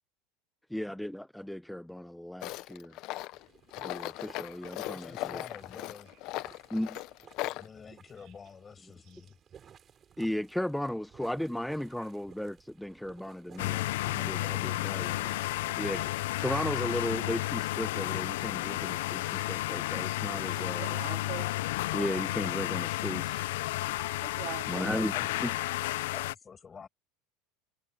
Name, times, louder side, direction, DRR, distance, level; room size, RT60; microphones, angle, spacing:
voice 1, 0.7-2.9 3.8-5.4 6.7-7.0 10.2-15.3 15.8-20.9 21.9-23.6 24.7-25.1 25.4-25.5, left 1 dB, ahead, 0.6 m, -35 dB
Tools, 2.4-7.7, left 18 dB, 50° left, 0.8 m, -38 dB
sound 1, 3.3-18.2, right 8 dB, 25° right, 5.7 m, -58 dB
voice 2, 4.9-6.1 7.4-9.4 24.6-25.4 26.1-26.9, left 6 dB, 20° left, 6.5 m, -47 dB
sound 2, 13.6-26.4, left 17 dB, 85° left, 0.4 m, -32 dB
voice 3, 20.5-21.6 24.2-25.1, right 18 dB, 50° right, 3.8 m, -44 dB
supercardioid pair, 150°, 0 cm